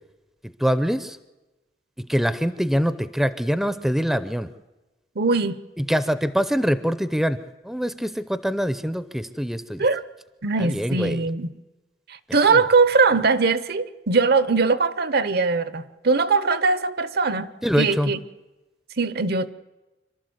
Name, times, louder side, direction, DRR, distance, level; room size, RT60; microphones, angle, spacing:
voice 1, 0.6-1.2 2.1-4.5 5.8-7.4 7.6-9.8 10.6-11.3 12.5-12.6 17.6-18.1, equal, ahead, 12 dB, 0.6 m, -24 dB
voice 2, 5.2-5.6 9.8-10.0 10.4-11.5 12.1-17.5 17.8-18.2 19.0-19.5, right 4 dB, 60° right, 14 dB, 0.9 m, -21 dB
27.0 x 12.5 x 8.0 m, 1.1 s
head